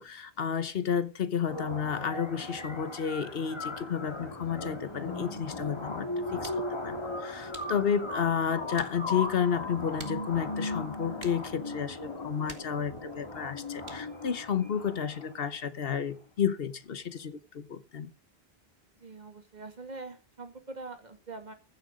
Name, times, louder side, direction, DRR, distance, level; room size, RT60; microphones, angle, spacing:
voice 1, 0.0-18.1, left 7 dB, 65° left, 1.2 m, -31 dB
sound 1, 1.5-15.5, left 2 dB, 25° left, 1.8 m, -38 dB
sound 2, 6.0-14.3, right 4 dB, 85° right, 2.0 m, -53 dB
voice 2, 19.0-21.5, right 3 dB, 45° right, 2.1 m, -43 dB
15.0 x 7.7 x 6.3 m
omnidirectional pair, 1.1 m